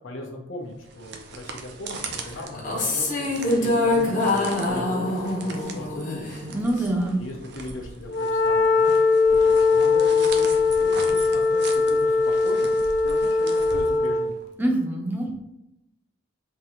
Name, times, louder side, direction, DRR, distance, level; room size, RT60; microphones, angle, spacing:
voice 1, 0.0-6.5 7.2-9.0 9.4-12.7 13.0-14.4, left 2 dB, 80° left, 0 dB, 0.9 m, -38 dB
sound 1, 0.7-14.4, right 4 dB, 55° right, 0.5 m, -40 dB
sound 2, 2.5-7.0, left 2 dB, 40° left, 0.9 m, -25 dB
voice 2, 6.5-7.2 14.6-15.4, right 1 dB, 10° right, 0 dB, 0.6 m, -24 dB
Wind instrument woodwind instrument, 8.1-14.4, left 4 dB, 55° left, 0.5 m, -20 dB
3.7 x 2.8 x 4.4 m, 0.87 s
head